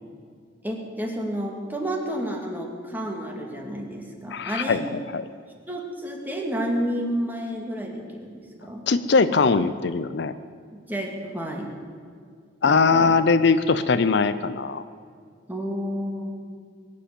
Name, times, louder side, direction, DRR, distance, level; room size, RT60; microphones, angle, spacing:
voice 1, 0.6-4.8 5.7-8.9 10.7-11.7 12.6-13.1 15.5-16.3, equal, 10° right, 1 dB, 2.1 m, -30 dB
voice 2, 4.3-5.2 8.9-10.3 12.6-14.8, left 4 dB, 60° left, 13 dB, 0.5 m, -21 dB
21.5 x 7.7 x 8.6 m, 2.2 s
head